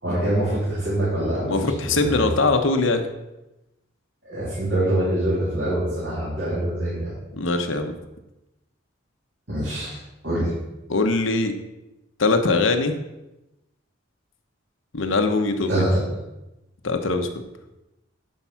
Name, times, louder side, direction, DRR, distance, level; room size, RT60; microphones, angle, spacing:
voice 1, 0.0-2.3 4.2-7.1 9.5-10.0 10.2-10.5 15.7-16.0, right 1 dB, 60° right, -9 dB, 3.4 m, -24 dB
voice 2, 1.5-3.1 7.3-7.9 10.9-11.5 12.2-12.9 14.9-15.9 16.8-17.3, left 3 dB, 80° left, 6 dB, 1.0 m, -21 dB
11.0 x 4.8 x 5.8 m, 0.97 s
head